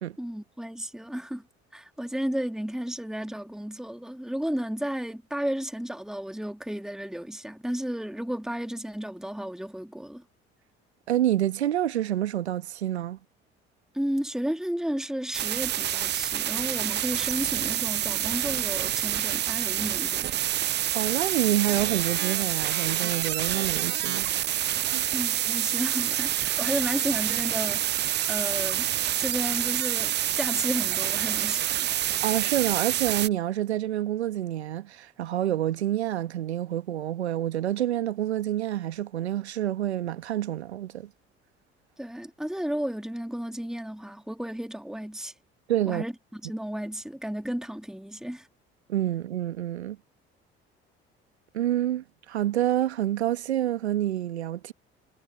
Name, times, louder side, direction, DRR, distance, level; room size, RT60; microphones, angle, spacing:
voice 1, 0.2-1.4 1.7-10.2 13.9-20.4 25.1-27.8 28.3-28.9 29.2-32.0 42.0-45.3 45.9-48.5, equal, ahead, 2.7 m, -33 dB
voice 2, 11.1-13.2 20.9-24.3 24.9-25.1 32.2-41.1 45.7-46.0 48.9-50.0 51.5-54.7, right 12 dB, 85° right, 1.5 m, -28 dB
sound 1, 15.3-33.3, right 12 dB, 35° right, 0.4 m, -27 dB
figure-of-eight pair, 55°, 33 cm